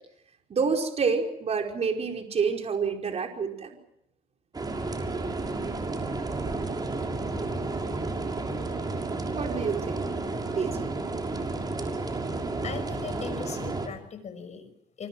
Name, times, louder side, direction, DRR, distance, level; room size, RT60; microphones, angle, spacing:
voice 1, 0.5-3.8 9.3-10.0 10.5-10.9, right 5 dB, 40° right, 3 dB, 5.0 m, -28 dB
sound 1, 4.5-13.9, right 3 dB, 25° right, 6.3 m, -31 dB
voice 2, 12.6-15.1, left 6 dB, 40° left, 10 dB, 6.1 m, -39 dB
27.0 x 25.5 x 6.2 m, 0.78 s
cardioid pair, 110°, 17 cm